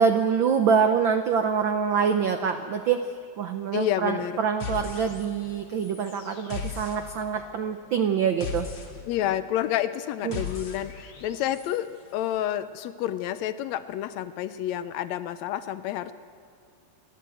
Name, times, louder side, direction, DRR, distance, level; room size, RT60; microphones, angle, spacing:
voice 1, 0.0-3.0 3.4-8.7 10.2-10.4, right 6 dB, 85° right, 7 dB, 1.0 m, -25 dB
voice 2, 3.7-4.4 9.1-16.1, left 12 dB, 75° left, 13 dB, 1.8 m, -29 dB
sound 1, 4.6-5.5 5.8-11.8, left 5 dB, 55° left, 3.0 m, -39 dB
28.5 x 11.5 x 7.8 m, 2.3 s
omnidirectional pair, 3.3 m